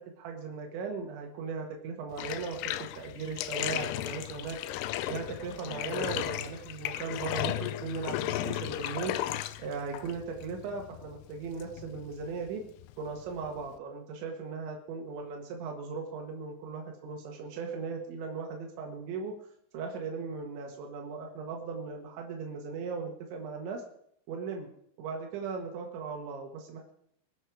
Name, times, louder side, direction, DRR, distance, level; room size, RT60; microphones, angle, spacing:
voice 1, 0.2-2.6 3.0-4.6 5.1-9.2 9.6-12.6 13.0-19.3 19.7-23.8 24.3-24.7 25.0-26.9, right 5 dB, 90° right, 2 dB, 3.9 m, -38 dB
Bathtub (filling or washing), 2.1-13.8, left 14 dB, 80° left, 2.4 m, -36 dB
23.0 x 7.7 x 4.8 m, 0.68 s
omnidirectional pair, 5.1 m